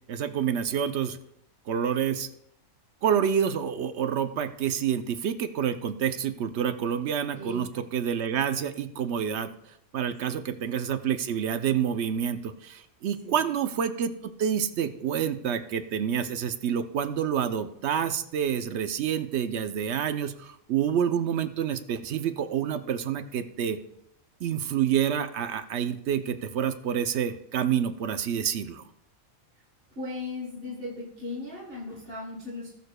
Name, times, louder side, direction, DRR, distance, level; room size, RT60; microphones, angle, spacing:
voice 1, 0.1-1.2 1.7-2.3 3.0-9.5 9.9-23.8 24.4-28.8, right 8 dB, 65° right, 10 dB, 0.8 m, -28 dB
voice 2, 7.4-7.8 13.2-13.4 29.9-32.7, left 2 dB, 45° right, -3 dB, 1.4 m, -37 dB
19.0 x 6.7 x 2.2 m, 0.76 s
omnidirectional pair, 1.5 m